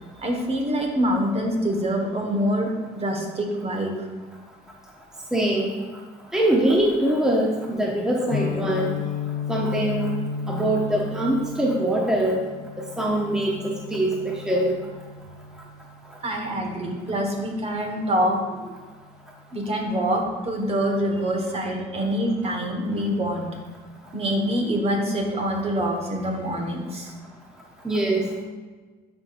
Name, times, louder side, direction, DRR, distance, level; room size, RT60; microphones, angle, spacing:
voice 1, 0.2-3.9 16.2-18.7 19.5-23.5 24.1-27.1, equal, 35° right, 2 dB, 1.5 m, -25 dB
voice 2, 5.3-5.7 6.3-8.9 9.5-10.1 10.5-12.4 12.8-14.8 27.8-28.4, right 1 dB, 5° right, -2 dB, 0.8 m, -23 dB
Guitar, 8.3-16.2, left 5 dB, 55° left, 0.7 m, -33 dB
11.0 x 5.0 x 2.6 m, 1.4 s
cardioid pair, 110°, 17 cm